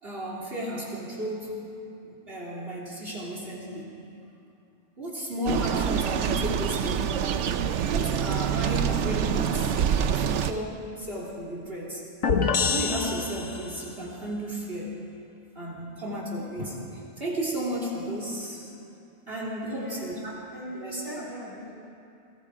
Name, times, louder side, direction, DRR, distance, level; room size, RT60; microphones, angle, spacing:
voice 1, 0.0-3.9 5.0-7.2 7.9-12.0 12.7-15.0 15.6-16.8 17.2-18.7 19.3-20.3 20.7-21.2, equal, 45° right, -3 dB, 3.6 m, -34 dB
sound 1, 5.5-10.5, right 8 dB, 65° right, 1.0 m, -26 dB
sound 2, 12.2-13.9, left 5 dB, 80° left, 1.7 m, -26 dB
voice 2, 19.6-21.7, equal, 25° left, -7 dB, 7.7 m, -39 dB
29.0 x 22.0 x 4.8 m, 2.7 s
omnidirectional pair, 1.3 m